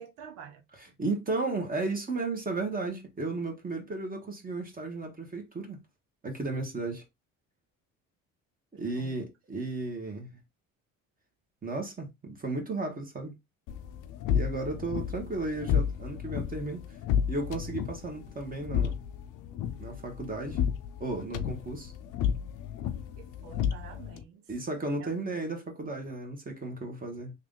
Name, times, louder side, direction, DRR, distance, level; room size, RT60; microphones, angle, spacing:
voice 1, 0.0-0.6 8.8-9.1 23.2-24.5 25.0-25.1, right 7 dB, 85° right, 1.1 m, -48 dB
voice 2, 0.7-5.8 6.2-7.0 8.7-10.4 11.6-13.3 14.3-16.8 17.3-19.0 19.8-20.7 21.0-21.9 24.5-27.3, right 3 dB, 25° right, 1.4 m, -34 dB
sound 1, 13.7-24.2, left 8 dB, 70° left, 0.7 m, -32 dB
3.2 x 2.6 x 3.8 m
supercardioid pair, 90°, 32 cm